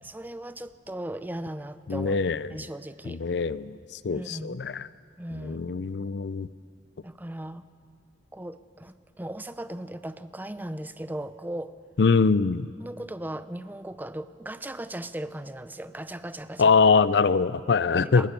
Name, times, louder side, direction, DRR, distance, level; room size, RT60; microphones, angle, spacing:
voice 1, 0.0-3.2 4.1-4.6 5.2-5.7 7.0-7.6 8.3-11.8 12.8-16.8 18.0-18.3, right 1 dB, 10° right, 12 dB, 0.6 m, -37 dB
voice 2, 1.9-2.5 3.1-3.8 4.0-4.8 5.4-6.5 12.0-12.7 16.6-18.3, left 4 dB, 70° left, 17 dB, 0.5 m, -23 dB
19.5 x 19.5 x 7.0 m, 2.2 s
head